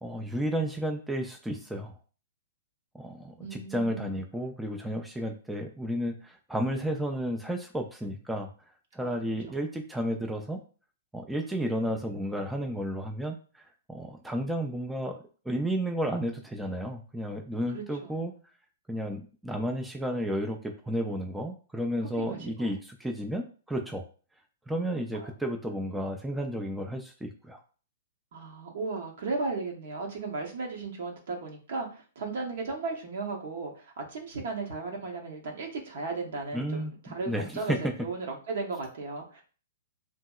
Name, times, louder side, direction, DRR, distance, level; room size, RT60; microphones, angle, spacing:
voice 1, 0.0-1.9 2.9-8.5 8.9-10.6 11.1-15.1 15.5-18.3 18.9-24.0 24.7-27.6 36.5-36.9 37.3-37.8, equal, 5° right, 3 dB, 0.4 m, -32 dB
voice 2, 3.4-4.2 9.0-9.6 17.7-18.4 22.2-22.7 25.1-25.3 28.3-39.4, right 3 dB, 60° right, 1 dB, 0.9 m, -36 dB
2.8 x 2.7 x 2.3 m, 0.38 s
figure-of-eight pair, 110°, 0 cm